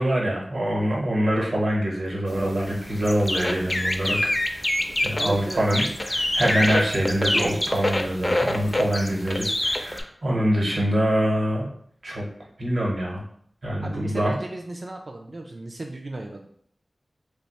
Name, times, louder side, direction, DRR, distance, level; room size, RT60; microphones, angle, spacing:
voice 1, 0.0-4.6 5.0-11.7 12.0-12.2 12.6-13.2 13.6-14.3, equal, 70° right, -2 dB, 1.0 m, -24 dB
sound 1, 2.3-10.0, left 1 dB, 35° left, 0.4 m, -26 dB
voice 2, 5.2-5.6 13.8-16.5, right 2 dB, 55° right, 2 dB, 0.3 m, -35 dB
2.7 x 2.2 x 4.0 m, 0.63 s
wide cardioid pair, 55°, 0 cm